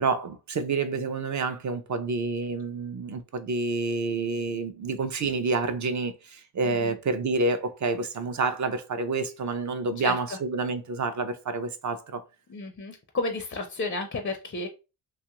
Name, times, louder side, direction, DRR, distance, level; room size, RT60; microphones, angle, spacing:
voice 1, 0.0-12.2, right 3 dB, 40° right, 0.5 m, -28 dB
voice 2, 6.6-6.9 10.0-10.2 12.5-14.7, left 3 dB, 25° left, 0.4 m, -32 dB
2.9 x 2.4 x 2.8 m
wide cardioid pair, 105°, 48 cm